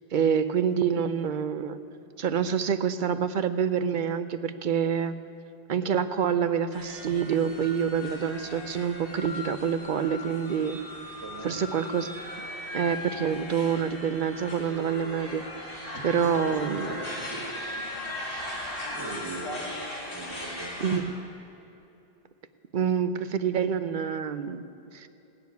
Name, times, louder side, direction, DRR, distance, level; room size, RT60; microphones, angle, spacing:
voice 1, 0.1-1.8 2.2-5.1 5.7-10.8 11.4-12.1 12.7-15.4 15.7-16.9 20.8-21.1 22.7-24.6 24.9-25.1, right 7 dB, 55° right, 11 dB, 0.7 m, -27 dB
sound 1, 6.7-21.0, left 1 dB, 60° left, 2.5 m, -38 dB
voice 2, 11.2-11.6 15.9-17.4 18.2-18.5 18.9-19.5 20.1-21.1, right 3 dB, 25° right, -1 dB, 1.8 m, -41 dB
18.0 x 6.9 x 9.4 m, 2.8 s
omnidirectional pair, 1.1 m